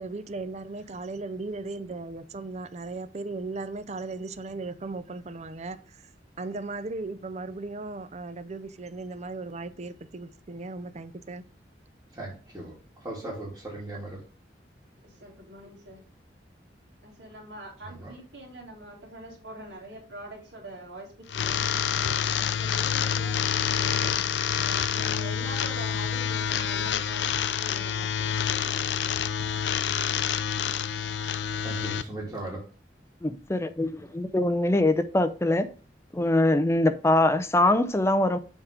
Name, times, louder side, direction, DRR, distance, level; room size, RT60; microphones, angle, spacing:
voice 1, 0.0-6.1 6.4-11.4, right 3 dB, 40° right, 0.5 m, -37 dB
voice 2, 12.1-12.7 13.0-14.2 18.0-18.1 31.2-31.3 31.6-32.6, right 1 dB, 15° right, 2.2 m, -37 dB
voice 3, 15.0-16.0 17.0-29.5, right 1 dB, 90° right, 2.5 m, -44 dB
sound 1, 21.3-32.0, left 8 dB, 75° left, 0.4 m, -27 dB
voice 4, 33.2-35.7 36.1-38.4, left 2 dB, 15° left, 0.5 m, -23 dB
7.3 x 3.7 x 4.9 m
head